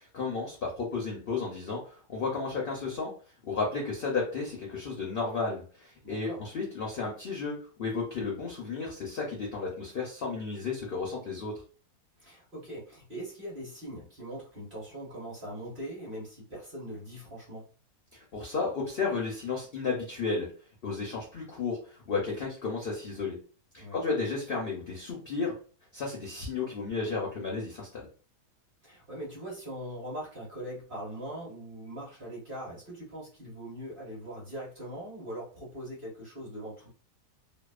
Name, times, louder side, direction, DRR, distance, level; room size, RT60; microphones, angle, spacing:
voice 1, 0.1-3.1 3.4-11.5 18.1-20.5 20.8-23.4 23.7-25.5 25.9-28.1, left 4 dB, 65° left, -2 dB, 0.5 m, -33 dB
voice 2, 6.0-6.4 12.2-17.7 23.8-24.0 28.8-36.9, right 1 dB, 40° right, -4 dB, 1.0 m, -41 dB
2.7 x 2.1 x 2.3 m, 0.38 s
omnidirectional pair, 1.7 m